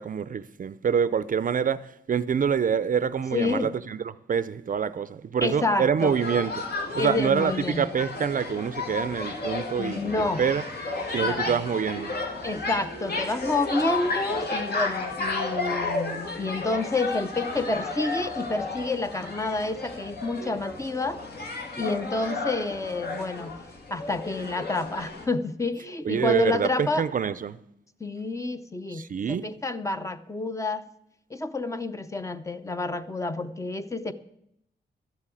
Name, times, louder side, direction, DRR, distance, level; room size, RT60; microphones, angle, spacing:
voice 1, 0.0-6.6 6.9-10.6 11.1-12.1 26.0-27.6 28.9-29.5, right 7 dB, 45° right, 0.5 m, -26 dB
voice 2, 3.3-3.7 5.4-6.1 7.0-7.8 9.8-10.4 11.2-11.5 12.4-21.2 21.8-23.5 23.9-27.0 28.0-30.8 31.3-34.1, left 2 dB, 15° left, 0.6 m, -29 dB
sound 1, 6.0-25.3, left 3 dB, 60° left, 2.4 m, -33 dB
13.0 x 7.3 x 9.1 m
wide cardioid pair, 155°, 19 cm